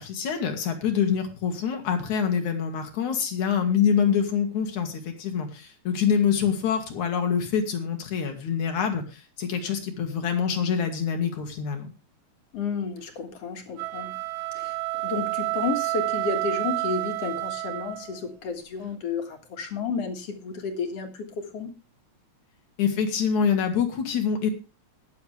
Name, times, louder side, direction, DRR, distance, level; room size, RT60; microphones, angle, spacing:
voice 1, 0.0-11.9 22.8-24.5, left 7 dB, 85° left, 5 dB, 3.2 m, -25 dB
voice 2, 12.5-14.2 14.5-14.8 15.0-21.3 21.5-21.7, left 5 dB, 60° left, 5 dB, 2.7 m, -31 dB
sound 1, 13.7-18.3, right 22 dB, 70° right, 1.7 m, -29 dB
20.0 x 7.2 x 3.3 m, 0.29 s
omnidirectional pair, 3.3 m